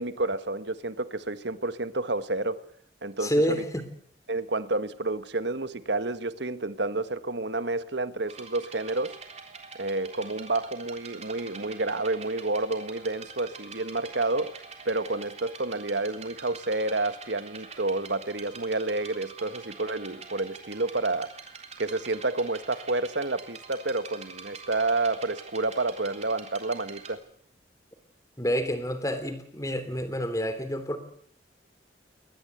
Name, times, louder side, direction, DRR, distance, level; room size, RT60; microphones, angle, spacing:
voice 1, 0.0-2.6 3.0-3.6 4.3-9.2 9.8-14.6 14.8-21.3 21.8-27.2, right 2 dB, 65° right, 1.5 m, -29 dB
voice 2, 3.2-3.9 28.4-31.0, equal, 15° left, 3.3 m, -28 dB
sound 1, 8.3-27.1, right 5 dB, 35° right, 3.6 m, -45 dB
22.5 x 19.5 x 8.1 m
head